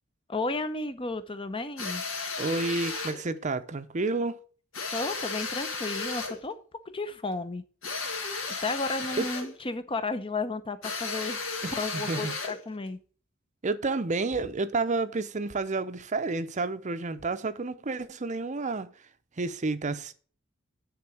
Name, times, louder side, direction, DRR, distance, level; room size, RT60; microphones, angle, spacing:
voice 1, 0.3-2.0 4.9-6.6 6.9-7.6 8.6-11.4 11.7-13.0, left 3 dB, 25° left, 0.8 m, -33 dB
sound 1, 1.8-3.2 4.7-6.4 7.8-9.6 10.8-12.6, left 4 dB, 75° left, 1.8 m, -34 dB
voice 2, 2.4-4.4 9.2-9.3 11.6-12.3 13.6-18.9 19.4-20.1, right 3 dB, 35° right, 0.7 m, -30 dB
9.7 x 3.9 x 6.9 m
head